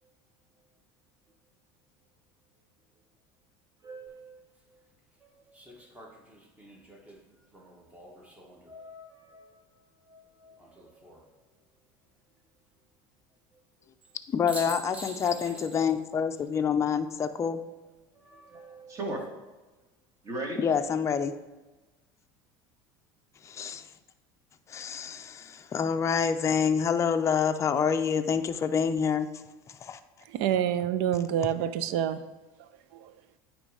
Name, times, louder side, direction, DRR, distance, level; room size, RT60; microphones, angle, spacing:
voice 1, 3.8-4.9 5.2-6.2 7.5-7.8 8.2-8.4 8.7-11.4 13.5-13.9 18.1-19.3 20.2-20.6, right 2 dB, 30° right, 1 dB, 1.6 m, -43 dB
sound 1, 4.1-4.2 5.5-8.8 10.6-11.2 14.0-14.1 14.5-16.0 16.3-16.4 18.8-19.3, equal, 10° right, 1.2 m, -45 dB
voice 2, 14.3-17.6 20.6-21.3 23.4-23.9 24.7-29.4 29.8-30.0, left 7 dB, 25° left, 8 dB, 0.5 m, -27 dB
voice 3, 30.3-32.2 33.0-33.1, right 10 dB, 70° right, 13 dB, 0.5 m, -27 dB
9.4 x 3.1 x 4.8 m, 1.2 s
supercardioid pair, 120°, 11 cm